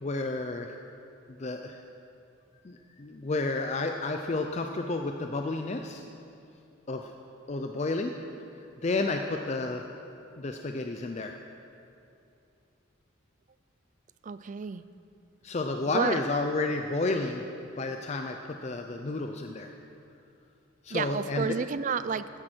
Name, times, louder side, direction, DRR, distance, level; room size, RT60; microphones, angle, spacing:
voice 1, 0.0-0.7 1.3-1.8 2.6-6.0 6.9-7.1 7.5-8.1 8.8-9.8 10.4-11.3 15.4-17.4 17.8-19.7 20.8-21.5, left 3 dB, 30° left, 4 dB, 0.4 m, -31 dB
voice 2, 14.2-14.8 15.9-16.2 20.9-22.3, right 5 dB, 35° right, 14 dB, 0.3 m, -30 dB
14.0 x 10.5 x 4.4 m, 2.6 s
head